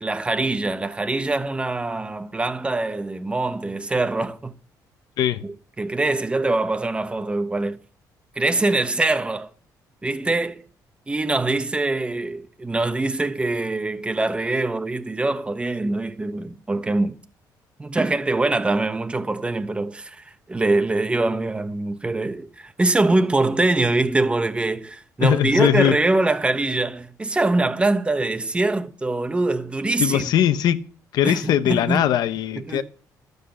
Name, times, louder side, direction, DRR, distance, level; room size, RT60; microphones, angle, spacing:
voice 1, 0.0-4.5 5.4-7.8 8.4-9.5 10.0-10.6 11.1-17.2 17.8-30.2 31.2-32.0 32.6-32.8, right 2 dB, 15° right, 1.2 m, -23 dB
voice 2, 25.2-26.0 30.0-30.8 31.1-32.8, left 11 dB, 75° left, 1.0 m, -20 dB
12.5 x 8.1 x 6.9 m
cardioid pair, 120°, 7 cm